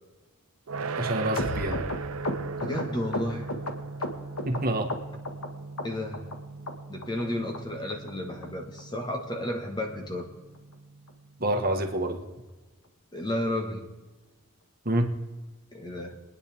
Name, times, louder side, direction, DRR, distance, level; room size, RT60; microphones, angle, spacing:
sound 1, 0.7-11.6, right 4 dB, 85° right, 0.7 m, -39 dB
voice 1, 1.0-1.8 4.4-4.9 11.4-12.2 14.8-15.1, right 1 dB, 40° right, 3 dB, 1.4 m, -27 dB
sound 2, 1.4-4.6 4.9-5.5 5.8-6.4 6.7-6.8 7.0-7.2 7.5-7.6 7.9-8.1 8.4-8.5 8.8-9.0 9.3-9.4 9.7-9.9 10.2-10.3 10.6-10.7 11.1-11.2, left 2 dB, 80° left, 1.6 m, -34 dB
voice 2, 2.6-3.5 5.8-6.3 6.9-10.3 13.1-13.9 15.7-16.1, left 1 dB, 20° left, 3 dB, 1.4 m, -32 dB
24.5 x 9.8 x 3.5 m, 1.2 s
head